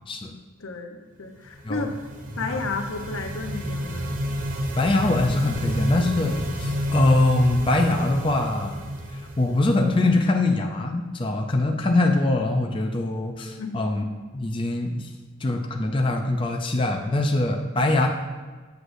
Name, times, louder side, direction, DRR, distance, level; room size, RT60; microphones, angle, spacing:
voice 1, 0.6-1.9 2.4-4.2 13.6-13.8, left 3 dB, 90° left, 4 dB, 0.8 m, -32 dB
sound 1, 1.5-10.2, equal, 40° right, 0.7 m, -30 dB
voice 2, 4.8-8.8 9.1-14.0 14.3-15.1 15.4-18.1, left 2 dB, 25° left, 3 dB, 0.5 m, -23 dB
8.0 x 7.8 x 2.6 m, 1.3 s
head